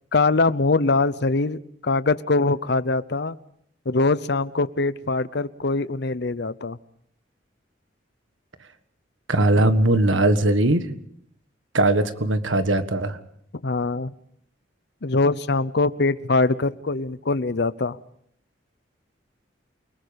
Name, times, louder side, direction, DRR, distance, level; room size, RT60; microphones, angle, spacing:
voice 1, 0.1-3.4 3.9-6.8 13.6-14.1 15.0-18.0, left 3 dB, 60° left, 16 dB, 0.8 m, -23 dB
voice 2, 9.3-11.0 11.7-13.2, right 2 dB, 85° right, 10 dB, 1.6 m, -20 dB
29.0 x 19.5 x 5.2 m, 0.68 s
head